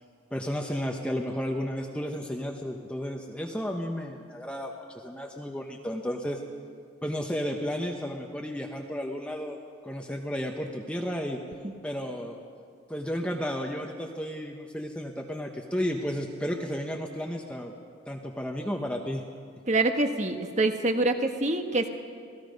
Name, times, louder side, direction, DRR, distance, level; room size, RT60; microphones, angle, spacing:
voice 1, 0.3-6.4 7.0-9.6 9.8-11.4 11.8-12.4 12.9-17.7 18.0-19.2, equal, 5° left, 1 dB, 1.0 m, -33 dB
voice 2, 19.7-21.9, right 2 dB, 35° right, 6 dB, 1.4 m, -25 dB
27.5 x 18.5 x 5.3 m, 2.2 s
head